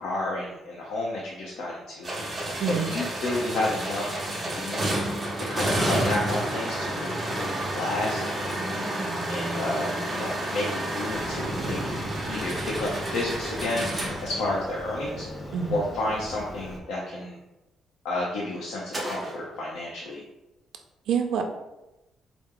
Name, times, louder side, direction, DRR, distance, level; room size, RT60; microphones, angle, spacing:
voice 1, 0.0-2.1 2.7-4.0 4.5-4.9 5.5-8.6 9.3-13.9 14.2-15.3 15.7-17.4 18.0-20.2, left 2 dB, 85° left, -4 dB, 0.7 m, -31 dB
sound 1, 2.0-15.1 18.9-19.4, right 1 dB, 15° right, 0.7 m, -30 dB
Female speech woman speaking, 5.8-6.4 7.9-10.2, right 1 dB, 35° left, 0.9 m, -39 dB
Motorcycle, 11.1-16.8, equal, 20° left, 0.5 m, -39 dB
voice 2, 21.1-21.4, right 7 dB, 65° right, 4 dB, 0.4 m, -26 dB
4.4 x 2.0 x 3.6 m, 0.97 s
cardioid pair, 170°, 0 cm